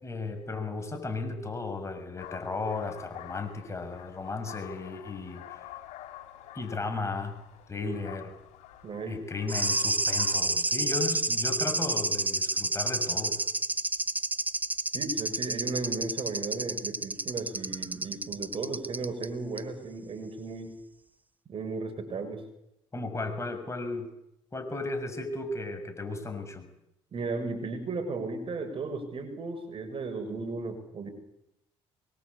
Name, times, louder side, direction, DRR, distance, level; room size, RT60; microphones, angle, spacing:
voice 1, 0.0-5.4 6.5-7.4 7.7-8.3 9.1-13.4 22.9-24.1 24.5-26.7, left 3 dB, 25° left, 6 dB, 6.3 m, -35 dB
sound 1, 2.2-10.4, left 12 dB, 80° left, 3.9 m, -47 dB
voice 2, 8.8-9.2 14.9-20.7 21.5-22.4 27.1-31.1, right 3 dB, 50° right, 6 dB, 7.0 m, -35 dB
sound 2, 9.5-19.3 19.6-19.7, right 2 dB, 15° right, 1.4 m, -29 dB
25.0 x 22.5 x 8.5 m, 0.82 s
supercardioid pair, 75°, 12 cm